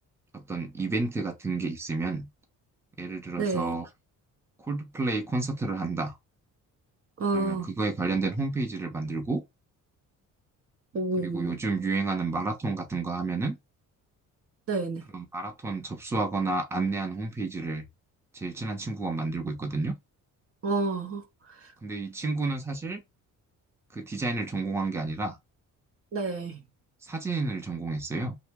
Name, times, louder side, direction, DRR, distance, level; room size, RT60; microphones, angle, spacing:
voice 1, 0.3-2.3 3.0-3.9 4.6-6.2 7.3-9.4 11.2-13.6 15.1-17.9 18.3-19.9 21.8-23.0 23.9-25.4 27.0-28.4, right 3 dB, 10° right, 0.7 m, -30 dB
voice 2, 3.4-3.8 7.2-7.7 10.9-11.5 14.7-15.0 20.6-21.2 26.1-26.6, right 3 dB, 45° right, 0.7 m, -29 dB
2.9 x 2.1 x 3.4 m
cardioid pair, 110°, 33 cm